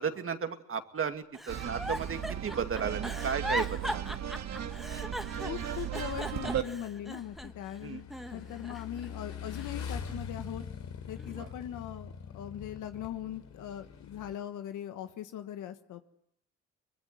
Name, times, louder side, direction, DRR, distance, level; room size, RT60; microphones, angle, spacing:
voice 1, 0.0-4.2 7.8-8.0 11.4-11.5, right 6 dB, 45° right, 7 dB, 2.4 m, -34 dB
Giggle, 1.3-7.7 8.1-9.1 9.5-10.6 11.2-11.5, equal, ahead, 1.3 m, -39 dB
sound 1, 1.5-6.6, right 10 dB, 60° right, 2.2 m, -36 dB
Motorcycle / Engine, 4.6-14.3, left 7 dB, 65° left, 3.5 m, -44 dB
voice 2, 5.4-10.6 11.1-16.1, left 10 dB, 80° left, 9 dB, 1.5 m, -40 dB
24.0 x 22.0 x 9.5 m, 0.73 s
cardioid pair, 90°, 30 cm